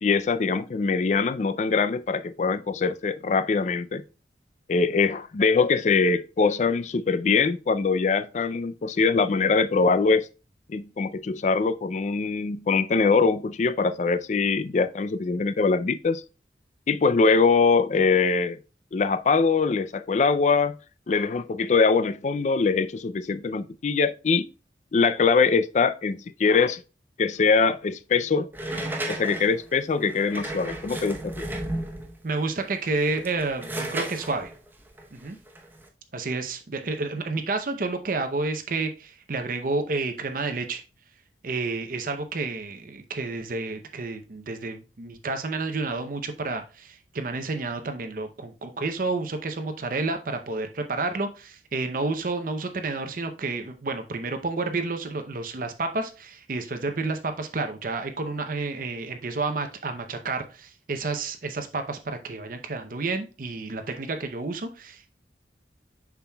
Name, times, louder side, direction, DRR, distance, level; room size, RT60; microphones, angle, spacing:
voice 1, 0.0-4.0 4.7-10.3 10.7-16.2 16.9-18.6 18.9-20.7 21.1-24.5 24.9-26.8 27.2-28.5 29.1-31.3, left 4 dB, 40° left, 0.4 m, -23 dB
sound 1, 28.5-32.2 32.9-35.9, right 1 dB, 10° right, 0.8 m, -34 dB
voice 2, 32.2-34.5 35.1-35.4 36.1-40.8 41.4-65.1, right 3 dB, 50° right, 0.6 m, -30 dB
7.0 x 6.0 x 2.3 m
head